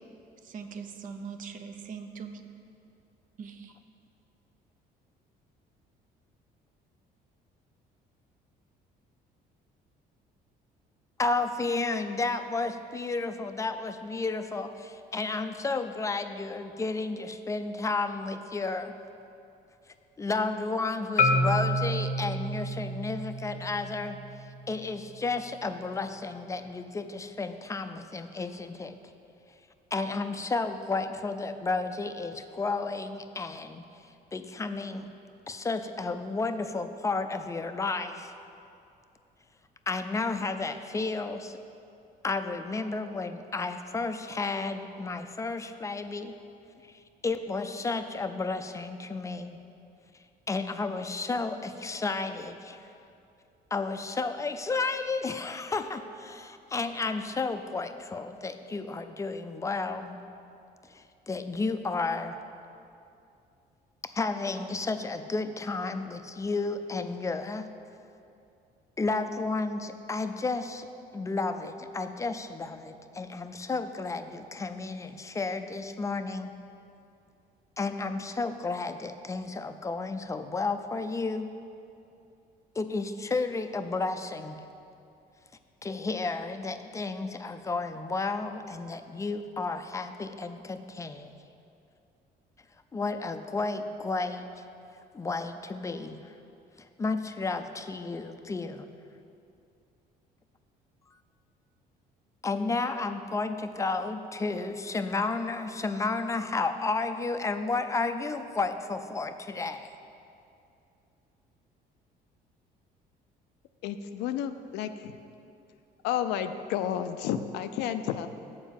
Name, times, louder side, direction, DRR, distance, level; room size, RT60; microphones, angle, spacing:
voice 1, 0.4-2.4 3.4-3.8, right 6 dB, 50° right, 7 dB, 0.6 m, -41 dB
voice 2, 11.2-18.9 20.2-29.0 29.9-33.8 34.3-35.1 35.5-38.3 39.9-41.6 42.2-46.4 46.9-49.6 50.5-52.8 53.7-60.2 60.8-62.4 64.0-67.7 69.0-70.9 71.1-76.5 77.8-81.5 82.8-84.6 85.8-91.3 92.9-94.6 95.1-96.3 97.0-98.9 102.4-109.9, left 3 dB, 20° left, 9 dB, 0.4 m, -32 dB
Marimba xylophone, 21.2-25.4, left 1 dB, 50° left, 0.7 m, -29 dB
voice 3, 113.8-115.2 116.0-118.3, left 10 dB, 90° left, 9 dB, 0.4 m, -31 dB
7.3 x 4.8 x 7.1 m, 2.6 s
cardioid pair, 110°, 17 cm